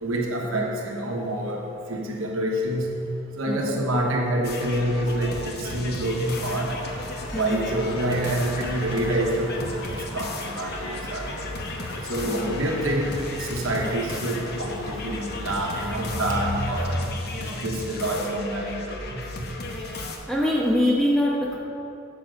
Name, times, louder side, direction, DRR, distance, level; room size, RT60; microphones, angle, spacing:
voice 1, 0.0-1.6 1.9-2.9 3.4-6.7 7.3-9.7 10.1-11.3 12.1-17.0 17.4-19.2, right 1 dB, 80° right, -1 dB, 1.2 m, -27 dB
voice 2, 3.5-3.8 7.3-7.7 12.3-12.6 19.7-20.0 20.3-21.6, left 1 dB, ahead, -4 dB, 0.6 m, -25 dB
sound 1, 4.4-20.2, left 2 dB, 50° left, 0.8 m, -35 dB
sound 2, 6.2-17.0, equal, 75° left, 1.3 m, -36 dB
6.8 x 5.1 x 6.2 m, 2.7 s
head